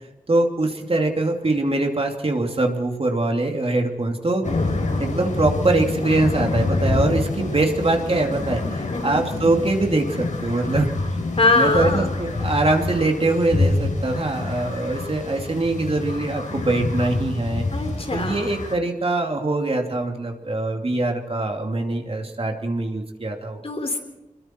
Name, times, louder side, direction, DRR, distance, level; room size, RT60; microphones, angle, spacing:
voice 1, 0.3-4.4 5.0-11.2 11.5-17.7 18.1-23.6, right 2 dB, 45° right, 2 dB, 2.7 m, -23 dB
sound 1, 4.4-18.7, left 2 dB, 60° left, 4.4 m, -26 dB
voice 2, 8.9-9.2 11.4-12.1 17.7-18.5 23.6-24.0, left 3 dB, 45° left, 4 dB, 3.9 m, -22 dB
27.5 x 22.0 x 4.6 m, 0.97 s
wide cardioid pair, 105°, 14 cm